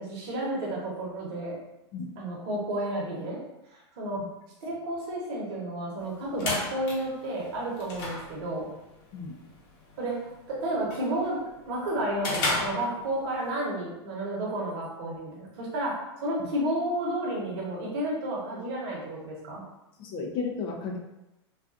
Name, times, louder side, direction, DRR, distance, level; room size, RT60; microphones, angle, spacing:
voice 1, 0.0-1.5 2.2-3.4 3.7-4.2 4.6-8.7 10.0-19.6, right 1 dB, 55° right, -4 dB, 1.0 m, -31 dB
sound 1, 6.0-13.5, left 2 dB, 50° left, 0.9 m, -36 dB
voice 2, 20.0-21.0, left 4 dB, 35° left, 1 dB, 0.5 m, -33 dB
2.4 x 2.3 x 2.4 m, 0.92 s
hypercardioid pair, 130°, 15 cm